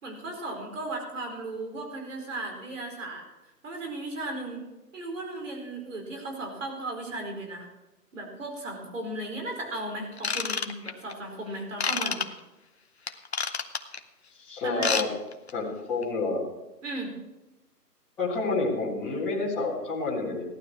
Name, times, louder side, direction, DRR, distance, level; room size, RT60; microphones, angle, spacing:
voice 1, 0.0-3.2 3.6-4.7 4.9-7.7 8.1-12.2 14.6-15.1 16.8-17.1, right 2 dB, 50° right, 2 dB, 4.6 m, -36 dB
Ratchet pawl / Tools, 10.2-11.1 11.8-12.3 13.1-14.0 14.7-15.1 15.3-15.5 16.0-16.1, left 5 dB, 40° left, 0.8 m, -28 dB
voice 2, 14.4-15.1 15.5-16.4 18.2-20.4, left 3 dB, 5° left, -11 dB, 1.5 m, -29 dB
17.5 x 12.0 x 4.6 m, 1.0 s
hypercardioid pair, 170°, 48 cm